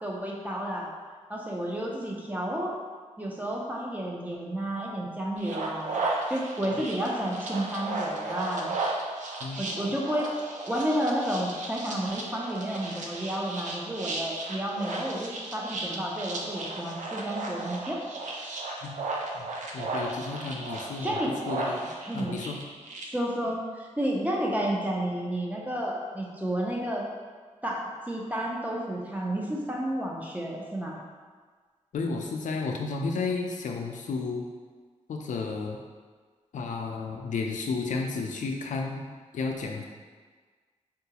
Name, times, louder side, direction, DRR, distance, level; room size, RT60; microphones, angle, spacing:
voice 1, 0.0-0.9 1.3-2.7 3.2-6.0 6.3-8.8 9.6-18.0 21.0-21.3 22.1-22.4 23.1-27.0 27.6-31.0, right 1 dB, 10° right, -2 dB, 0.5 m, -31 dB
sound 1, 5.4-23.0, right 2 dB, 80° right, 0.5 m, -35 dB
voice 2, 19.7-21.1 21.5-21.8 22.1-22.6 31.9-34.4 35.1-35.8 36.5-39.1 39.3-39.8, left 4 dB, 80° left, 2 dB, 0.4 m, -32 dB
3.8 x 2.3 x 2.8 m, 1.5 s
wide cardioid pair, 80°, 13 cm